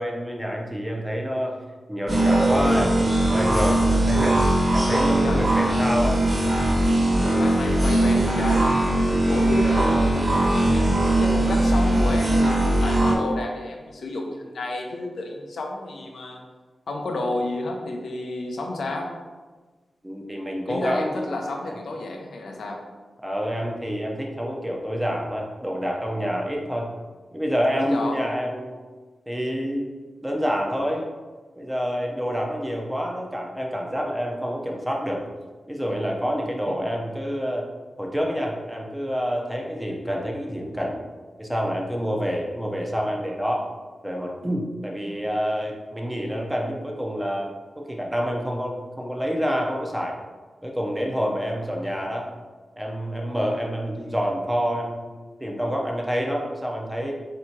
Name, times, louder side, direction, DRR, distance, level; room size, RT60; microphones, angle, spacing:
voice 1, 0.0-1.6 1.9-4.4 4.7-6.2 20.0-21.4 21.7-21.8 23.2-26.9 27.3-28.8 29.3-29.9 30.2-31.1 31.6-35.3 35.7-37.7 38.0-41.0 41.4-43.7 44.0-50.2 50.6-52.3 52.8-57.1, equal, 5° right, 0 dB, 0.6 m, -27 dB
sound 1, 2.1-13.2, right 1 dB, 25° right, 1.0 m, -20 dB
voice 2, 7.4-8.7 9.3-16.4 16.9-19.1 20.7-22.8 27.7-28.2 36.7-36.8, left 2 dB, 85° left, 1 dB, 0.6 m, -31 dB
3.5 x 2.8 x 4.4 m, 1.3 s
wide cardioid pair, 125°, 0 cm